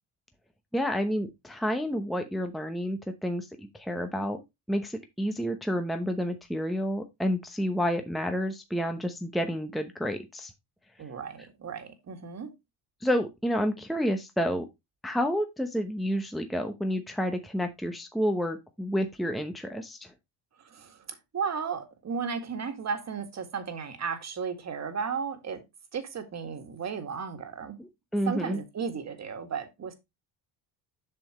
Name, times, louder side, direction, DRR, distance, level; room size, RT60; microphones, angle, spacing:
voice 1, 0.7-4.4 4.7-10.5 13.0-14.7 15.0-20.1 27.8-28.6, equal, ahead, 0.9 m, -30 dB
voice 2, 11.0-12.5 20.6-25.6 25.9-27.8 28.3-29.9, right 6 dB, 40° right, 2.0 m, -34 dB
7.6 x 6.3 x 3.0 m
cardioid pair, 100°, 41 cm